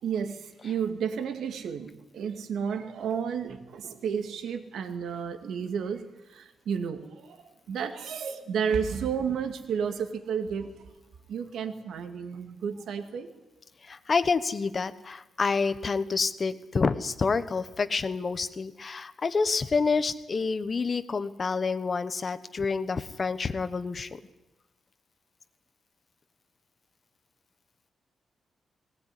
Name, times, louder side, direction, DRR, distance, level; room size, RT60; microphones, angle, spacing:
voice 1, 0.0-6.0 6.3-10.7 11.3-13.3, right 7 dB, 90° right, 8 dB, 2.2 m, -32 dB
voice 2, 13.8-24.2, left 4 dB, 35° left, 13 dB, 1.1 m, -28 dB
19.5 x 19.0 x 9.9 m, 1.0 s
wide cardioid pair, 150°, 0 cm